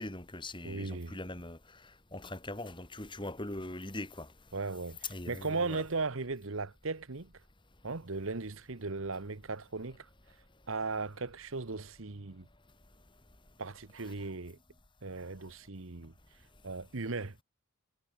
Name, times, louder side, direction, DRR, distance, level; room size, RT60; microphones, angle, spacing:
voice 1, 0.0-1.6 2.1-4.3 5.0-5.8, left 2 dB, 20° left, 2.9 m, -41 dB
voice 2, 0.6-1.2 4.5-7.3 7.8-10.1 10.7-12.5 13.6-14.6 15.0-16.1 16.6-17.4, right 3 dB, 65° right, 1.2 m, -37 dB
head